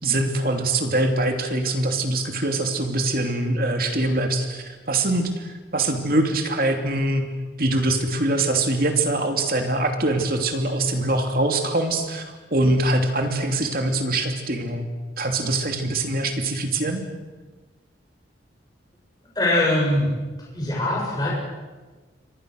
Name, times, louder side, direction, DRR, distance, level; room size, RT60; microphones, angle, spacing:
voice 1, 0.0-7.3 7.6-14.9 15.2-17.0, right 2 dB, 50° right, 4 dB, 2.8 m, -23 dB
voice 2, 19.4-20.1 20.5-21.3, left 1 dB, 20° left, -5 dB, 7.5 m, -22 dB
29.5 x 24.5 x 6.6 m, 1.3 s
head